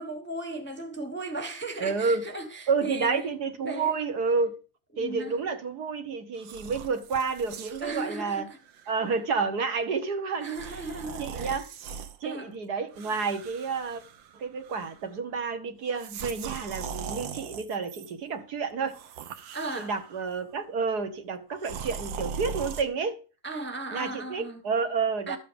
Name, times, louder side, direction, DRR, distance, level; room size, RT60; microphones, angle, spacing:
voice 1, 0.0-3.3 3.6-3.9 4.9-5.4 7.8-8.6 8.8-8.9 10.4-11.7 12.2-12.5 19.5-19.9 23.4-24.6 25.3-25.4, right 2 dB, 5° left, 1.0 m, -36 dB
voice 2, 1.8-2.2 2.7-4.5 5.0-8.4 8.9-10.6 11.2-11.7 12.2-14.0 14.3-19.0 19.7-23.2 23.9-25.4, right 5 dB, 60° right, 1.7 m, -30 dB
sound 1, 6.4-7.9 8.6-8.8 10.4-12.2 12.9-14.4 14.6-15.1 15.9-18.1 18.9-20.2 21.6-22.8, right 6 dB, 80° right, 1.6 m, -40 dB
13.0 x 7.4 x 5.2 m
omnidirectional pair, 2.0 m